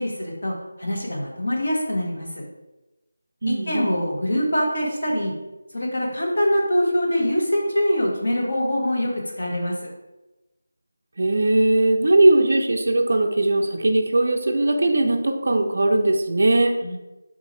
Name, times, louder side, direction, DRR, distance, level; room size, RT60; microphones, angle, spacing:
voice 1, 0.0-2.3 3.5-5.3 5.7-9.7 16.8-17.0, equal, 50° left, -2 dB, 0.9 m, -24 dB
voice 2, 3.4-4.0 11.2-16.8, right 2 dB, 45° right, 5 dB, 0.3 m, -19 dB
3.6 x 2.7 x 3.0 m, 1.0 s
figure-of-eight pair, 180°, 0 cm